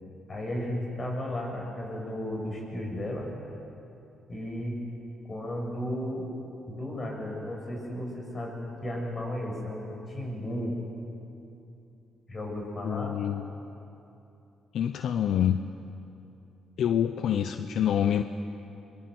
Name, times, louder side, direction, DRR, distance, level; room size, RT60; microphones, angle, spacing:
voice 1, 0.3-3.3 4.3-4.8 5.3-6.3 6.7-10.7 12.3-13.1, left 1 dB, 35° left, 0 dB, 7.2 m, -34 dB
voice 2, 12.8-13.5 14.7-15.6 16.8-18.2, left 9 dB, 70° left, 9 dB, 0.7 m, -26 dB
24.0 x 22.5 x 8.0 m, 2.9 s
cardioid pair, 90°, 0 cm